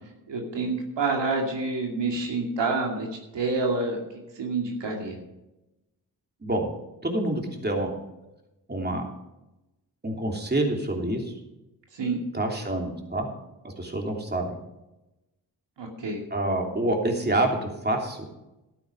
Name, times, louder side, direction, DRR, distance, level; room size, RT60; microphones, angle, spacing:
voice 1, 0.3-3.1 3.3-4.0 4.3-5.2 11.9-12.2 15.8-16.2, right 3 dB, 80° right, 1 dB, 2.6 m, -28 dB
voice 2, 7.0-8.0 8.7-9.1 10.0-11.3 12.3-13.3 13.6-14.5 16.3-18.2, right 1 dB, 25° right, 2 dB, 3.0 m, -27 dB
12.5 x 9.0 x 5.4 m, 0.97 s
cardioid pair, 65°, 43 cm